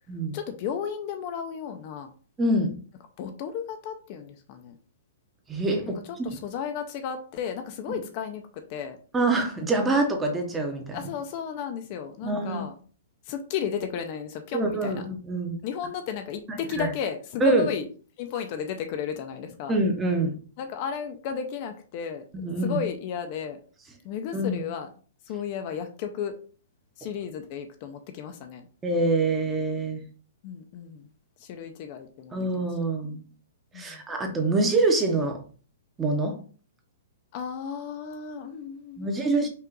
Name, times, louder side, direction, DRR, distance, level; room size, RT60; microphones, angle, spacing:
voice 1, 0.3-2.1 3.2-4.8 6.0-9.0 10.9-12.7 13.2-15.0 15.6-17.9 18.2-19.8 20.6-22.2 22.6-23.6 24.0-24.9 25.3-26.3 27.0-28.6 30.4-31.1 31.4-32.4 33.7-34.0 37.3-39.5, left 7 dB, 30° left, 6 dB, 0.5 m, -34 dB
voice 2, 2.4-2.7 5.5-6.0 9.1-11.0 12.2-12.6 14.5-15.6 16.5-16.9 17.4-17.7 19.7-20.3 22.3-22.8 24.3-24.6 28.8-30.0 32.3-33.2 33.7-35.4 36.0-36.4 39.0-39.5, right 2 dB, 10° right, 3 dB, 0.7 m, -25 dB
5.4 x 2.4 x 3.8 m, 0.40 s
hypercardioid pair, 170°, 0 cm